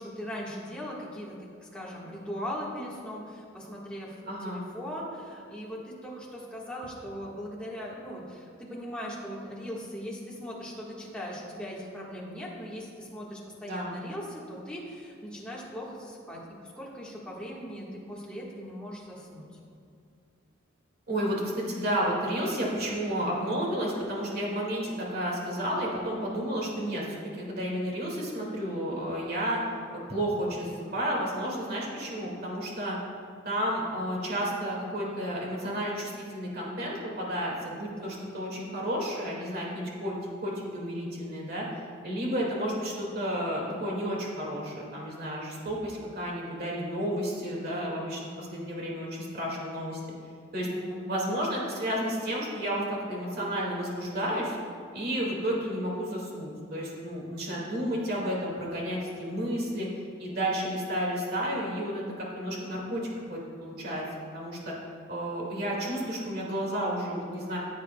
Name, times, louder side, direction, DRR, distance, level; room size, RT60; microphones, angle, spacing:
voice 1, 0.0-1.3 1.6-19.5 38.0-38.3 50.6-51.0, equal, 5° left, -6 dB, 1.5 m, -39 dB
voice 2, 4.3-4.6 13.6-14.0 21.1-29.6 30.1-33.0 33.4-40.2 40.4-41.7 42.0-50.0 50.5-50.7 51.1-54.6 54.9-59.9 60.2-64.1 64.3-64.7 65.1-67.6, equal, 50° right, -3 dB, 2.1 m, -31 dB
15.0 x 8.3 x 2.3 m, 2.3 s
head